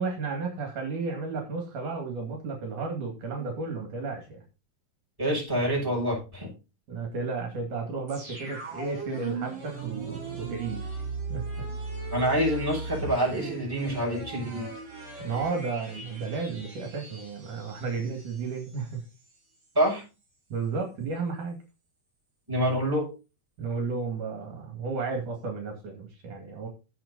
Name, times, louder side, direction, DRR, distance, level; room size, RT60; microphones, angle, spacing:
voice 1, 0.0-4.4 6.9-11.4 15.2-19.0 20.5-21.6 23.6-26.7, right 4 dB, 70° right, 3 dB, 3.6 m, -33 dB
voice 2, 5.2-6.5 12.1-14.7 19.7-20.0 22.5-23.1, equal, 5° right, -4 dB, 6.5 m, -26 dB
sound 1, 8.1-18.9 19.2-19.3, right 3 dB, 55° right, 4.9 m, -38 dB
15.5 x 6.2 x 4.1 m, 0.31 s
omnidirectional pair, 3.8 m